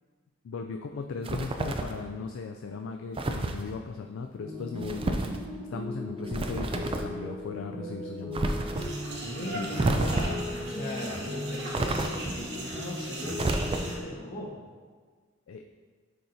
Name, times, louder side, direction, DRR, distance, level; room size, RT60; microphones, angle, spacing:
voice 1, 0.4-5.2 5.7-8.4 9.5-10.0 15.5-15.6, left 4 dB, 75° left, 4 dB, 0.3 m, -38 dB
sound 1, 1.2-2.0 3.2-3.6 4.8-5.4 6.3-7.1 8.3-8.9 9.8-10.5 11.7-12.4 13.3-14.1, right 2 dB, 30° right, 0.4 m, -29 dB
sound 2, 4.4-14.0, left 1 dB, 15° left, 1.7 m, -38 dB
sound 3, 8.7-14.0, right 1 dB, 60° right, 1.1 m, -39 dB
voice 2, 9.3-14.5, left 1 dB, 50° left, -3 dB, 1.3 m, -38 dB
10.0 x 4.3 x 2.7 m, 1.5 s
head